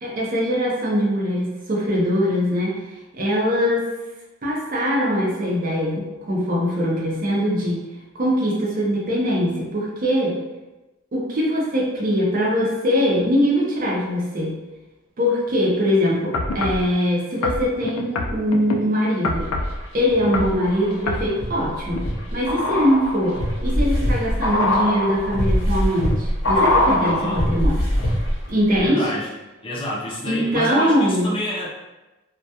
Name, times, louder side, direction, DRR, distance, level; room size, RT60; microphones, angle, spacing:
voice 1, 0.0-2.8 3.1-3.9 4.4-7.9 8.1-10.4 11.1-14.6 15.2-19.5 19.9-27.8 28.5-29.1 30.3-31.4, equal, 40° right, -4 dB, 0.5 m, -22 dB
sound 1, 16.3-16.8 17.4-18.8 19.2-19.8 20.2-20.6 21.1-21.3 21.9-22.0, left 3 dB, 90° left, 0.3 m, -25 dB
sound 2, 19.4-20.2 20.6-28.5 28.8-28.9, left 1 dB, 65° left, 0.7 m, -22 dB
voice 2, 27.0-27.4 28.8-29.3 29.6-31.7, equal, 25° left, -3 dB, 0.4 m, -28 dB
2.2 x 2.2 x 2.7 m, 1.1 s
head